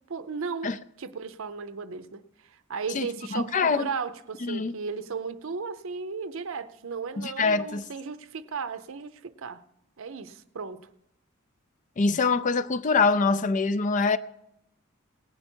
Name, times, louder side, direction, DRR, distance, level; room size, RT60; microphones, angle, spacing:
voice 1, 0.1-0.7 1.0-9.6 10.0-10.9, right 5 dB, 60° right, 0.6 m, -35 dB
voice 2, 2.9-3.9 4.4-4.7 7.2-7.8 12.0-14.2, left 4 dB, 35° left, 0.4 m, -24 dB
18.5 x 8.2 x 4.5 m
head